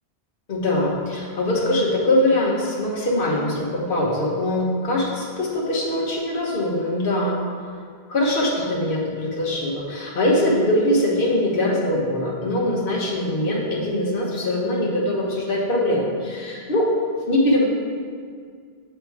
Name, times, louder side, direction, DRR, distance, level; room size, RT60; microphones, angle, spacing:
voice 1, 0.5-7.4 8.1-16.9 17.3-17.6, left 1 dB, 60° left, -3 dB, 1.2 m, -22 dB
6.7 x 3.4 x 4.6 m, 2.1 s
omnidirectional pair, 1.1 m